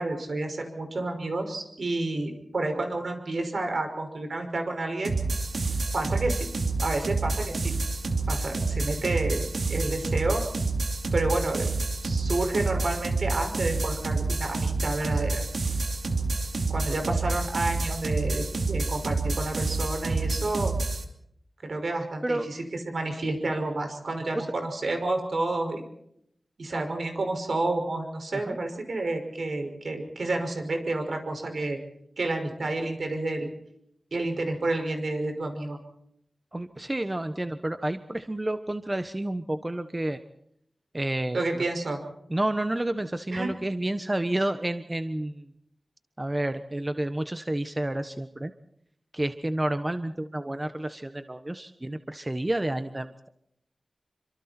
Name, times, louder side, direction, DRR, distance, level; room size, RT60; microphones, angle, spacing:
voice 1, 0.0-5.1 5.9-6.5 6.8-7.7 8.3-10.4 11.1-11.7 12.0-15.4 16.7-20.7 21.6-25.8 26.6-31.8 32.2-33.5 34.1-35.8 41.3-42.0 43.3-43.5, right 2 dB, 70° right, 5 dB, 5.8 m, -30 dB
sound 1, 5.0-21.0, right 3 dB, 90° right, 2.9 m, -28 dB
voice 2, 36.5-40.2 40.9-41.6 42.3-45.5 46.2-48.5 49.1-53.1, right 1 dB, 25° right, 9 dB, 1.2 m, -30 dB
28.0 x 25.5 x 4.5 m, 0.73 s
wide cardioid pair, 80°, 0 cm